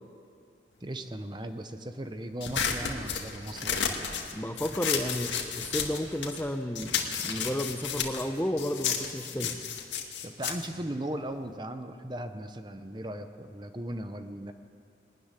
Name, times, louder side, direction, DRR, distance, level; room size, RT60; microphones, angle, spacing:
voice 1, 0.8-4.0 10.2-14.5, right 1 dB, 25° right, 8 dB, 0.8 m, -37 dB
sound 1, 2.4-6.5 6.7-11.6, left 7 dB, 80° left, 2.0 m, -32 dB
voice 2, 4.3-6.9 7.2-9.6, equal, 10° left, 7 dB, 0.7 m, -32 dB
21.0 x 13.0 x 9.8 m, 2.5 s
head